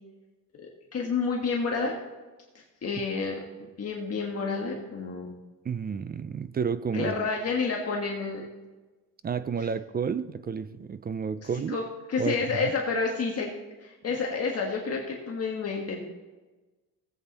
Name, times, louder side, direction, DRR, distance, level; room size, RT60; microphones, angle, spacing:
voice 1, 0.5-1.9 2.8-5.4 6.9-8.5 11.4-11.8 12.1-13.5 13.8-16.0, left 4 dB, 40° left, 1.6 m, -30 dB
voice 2, 5.6-7.3 9.2-11.8 12.2-12.3 12.6-12.7, right 6 dB, 25° right, 0.4 m, -31 dB
17.5 x 8.0 x 4.2 m
cardioid pair, 140°, 38 cm